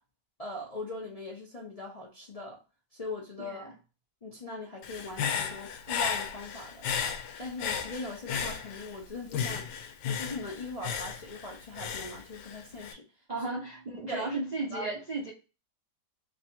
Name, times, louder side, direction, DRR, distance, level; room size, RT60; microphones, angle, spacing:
voice 1, 0.4-2.6 2.9-3.7 4.2-6.8 7.4-13.0 14.1-14.3 14.7-14.9, left 2 dB, 45° left, -3 dB, 0.4 m, -40 dB
voice 2, 3.4-3.7 13.3-15.3, right 2 dB, 90° right, -2 dB, 0.3 m, -34 dB
Human voice / Breathing, 4.8-9.0 9.3-12.9, left 7 dB, 75° left, 1.2 m, -34 dB
3.2 x 2.7 x 4.2 m, 0.32 s
omnidirectional pair, 1.8 m